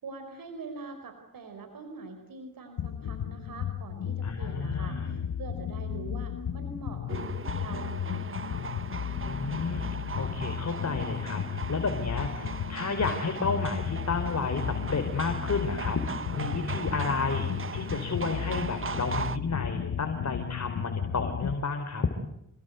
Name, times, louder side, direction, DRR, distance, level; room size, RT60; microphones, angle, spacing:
voice 1, 0.0-7.2 7.6-8.6, right 4 dB, 85° right, 6 dB, 4.8 m, -43 dB
sound 1, 2.8-21.5, left 9 dB, 80° left, 1.1 m, -34 dB
voice 2, 4.2-5.1 9.2-22.1, left 4 dB, 55° left, 6 dB, 4.2 m, -32 dB
sound 2, 7.1-19.4, right 5 dB, 40° right, 1.3 m, -39 dB
29.0 x 21.5 x 9.4 m, 0.80 s
cardioid pair, 65°, 33 cm